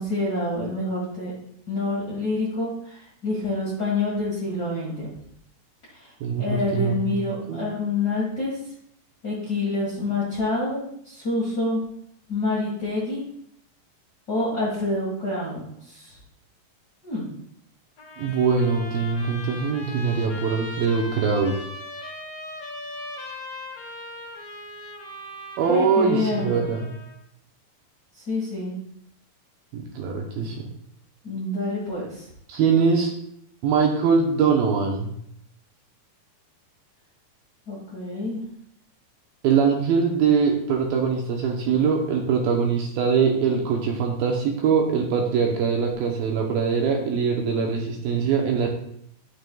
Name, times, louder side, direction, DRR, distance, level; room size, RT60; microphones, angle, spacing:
voice 1, 0.0-1.3 1.7-5.1 6.0-6.1 6.4-8.6 9.2-11.8 12.3-13.2 14.3-16.2 17.0-17.3 25.7-26.6 28.3-28.8 31.2-32.3 37.7-38.4, left 2 dB, 80° left, -7 dB, 0.8 m, -27 dB
voice 2, 6.2-7.7 18.2-21.6 25.6-26.9 29.7-30.7 32.5-33.1 33.6-35.1 39.4-48.7, right 5 dB, 75° right, 0 dB, 2.4 m, -22 dB
Trumpet, 18.0-27.2, left 1 dB, 55° left, 2.0 m, -39 dB
11.5 x 6.7 x 2.3 m, 0.71 s
omnidirectional pair, 4.8 m